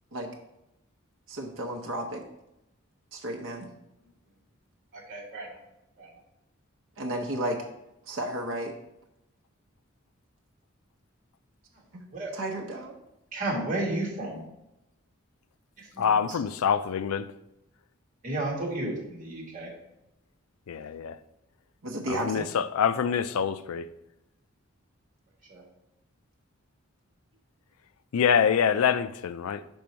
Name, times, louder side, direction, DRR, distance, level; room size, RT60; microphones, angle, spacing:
voice 1, 1.3-2.2 3.1-3.7 7.0-7.6 8.1-8.7 11.9-12.0 12.3-13.0 21.8-22.5, right 1 dB, 65° right, 0.8 m, -33 dB
voice 2, 4.9-5.5 6.0-6.1 12.1-12.3 13.3-14.4 15.9-16.4 18.2-19.7 25.5-25.6, right 2 dB, 35° right, 1.7 m, -32 dB
voice 3, 16.0-17.3 20.7-21.2 22.1-23.9 28.1-29.6, left 7 dB, 90° left, 0.4 m, -25 dB
5.3 x 5.2 x 4.5 m
head